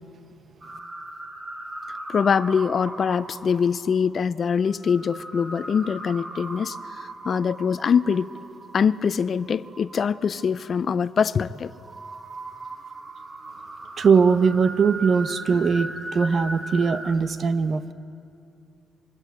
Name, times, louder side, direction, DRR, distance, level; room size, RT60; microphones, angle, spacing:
sound 1, 0.6-10.7 11.2-17.2, right 2 dB, 35° right, 2.5 m, -38 dB
voice 1, 2.1-8.3 8.7-11.7, left 6 dB, 50° left, 16 dB, 0.6 m, -23 dB
voice 2, 14.0-17.9, right 5 dB, 50° right, 12 dB, 1.0 m, -20 dB
25.5 x 24.0 x 7.9 m, 2.5 s
cardioid pair, 90°, 0 cm